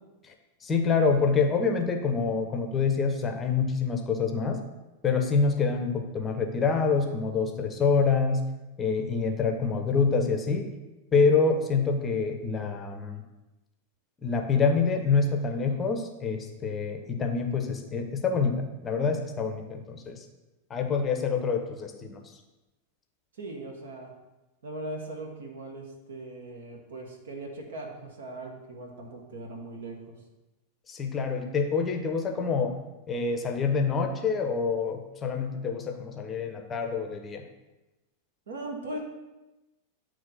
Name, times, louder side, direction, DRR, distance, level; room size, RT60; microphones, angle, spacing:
voice 1, 0.6-4.6 5.0-8.4 8.8-10.7 11.1-13.2 14.2-20.3 20.7-22.2 30.9-32.8 33.1-37.4, left 5 dB, 20° left, 4 dB, 0.7 m, -26 dB
voice 2, 23.4-24.1 24.6-30.0 38.5-39.0, right 2 dB, 65° right, 2 dB, 1.3 m, -39 dB
8.7 x 3.1 x 4.1 m, 1.0 s
figure-of-eight pair, 90°, 0 cm